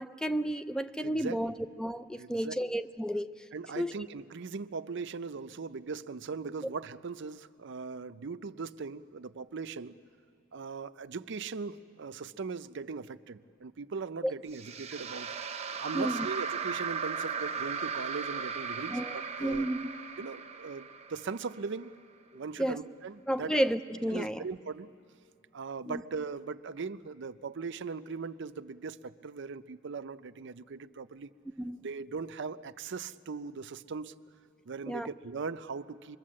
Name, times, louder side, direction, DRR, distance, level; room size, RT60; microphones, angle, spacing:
voice 1, 0.0-3.3 3.8-3.9 14.2-14.3 15.9-16.2 18.9-19.8 22.6-22.8 23.3-24.4 25.9-26.0 31.6-31.8 34.9-35.1, right 1 dB, 5° left, 11 dB, 0.5 m, -32 dB
voice 2, 1.0-1.4 2.1-2.5 3.5-10.0 10.5-19.7 20.2-21.9 22.3-23.5 24.1-24.9 25.5-31.3 31.8-34.2 34.6-36.2, right 4 dB, 65° right, 12 dB, 0.5 m, -39 dB
sound 1, 14.5-21.8, right 6 dB, 35° right, 0.8 m, -37 dB
25.0 x 22.5 x 7.5 m, 2.4 s
head